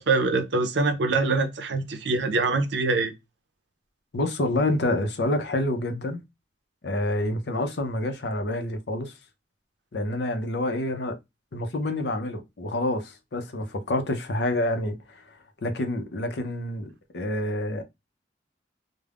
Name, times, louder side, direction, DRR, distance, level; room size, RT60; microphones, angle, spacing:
voice 1, 0.0-3.1, right 3 dB, 75° right, 0.5 m, -24 dB
voice 2, 4.1-6.2 6.8-9.1 9.9-11.2 11.5-17.8, left 1 dB, 65° left, 0.6 m, -28 dB
2.4 x 2.1 x 3.3 m
head